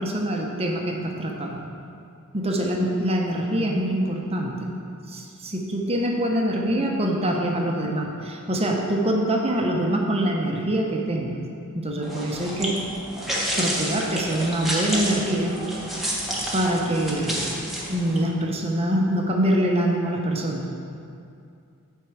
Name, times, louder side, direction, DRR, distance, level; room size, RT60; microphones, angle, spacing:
voice 1, 0.0-1.6 2.3-4.7 5.1-11.4 11.7-12.8 13.6-15.6 16.5-17.5 17.9-20.7, right 1 dB, 25° right, 0 dB, 0.9 m, -24 dB
sound 1, 12.0-18.2, equal, ahead, 1.2 m, -30 dB
7.9 x 4.6 x 7.0 m, 2.5 s
head